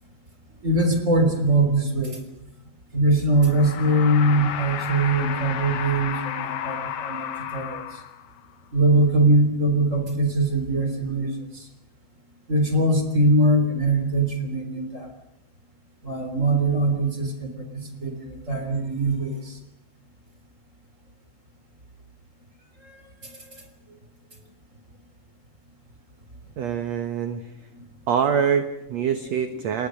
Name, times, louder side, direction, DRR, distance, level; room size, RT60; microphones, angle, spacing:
voice 1, 0.6-2.2 2.9-7.8 8.7-11.6 12.5-15.1 16.0-19.5, right 1 dB, 20° right, 6 dB, 3.5 m, -22 dB
sound 1, 3.4-8.5, left 9 dB, 60° left, 2.4 m, -32 dB
voice 2, 26.6-27.4 28.1-29.9, right 7 dB, 60° right, 7 dB, 1.9 m, -24 dB
29.0 x 19.5 x 6.5 m, 0.84 s
omnidirectional pair, 4.4 m